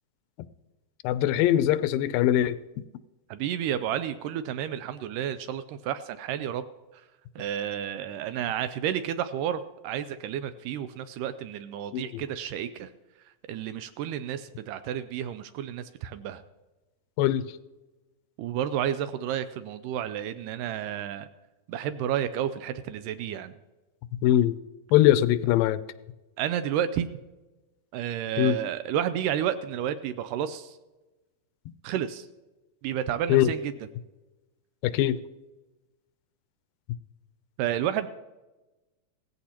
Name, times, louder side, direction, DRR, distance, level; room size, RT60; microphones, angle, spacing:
voice 1, 1.0-2.6 11.9-12.0 17.2-17.5 24.2-24.6 24.9-25.8 28.4-28.6 33.3-33.5 34.8-35.2, left 12 dB, 85° left, 2.2 m, -21 dB
voice 2, 3.3-6.7 6.9-7.1 7.4-12.9 13.3-16.4 18.4-21.3 21.7-23.6 26.4-27.1 27.9-30.8 31.8-32.3 32.8-33.7 37.6-38.1, right 10 dB, 80° right, 2.0 m, -31 dB
17.0 x 14.5 x 2.9 m
omnidirectional pair, 4.0 m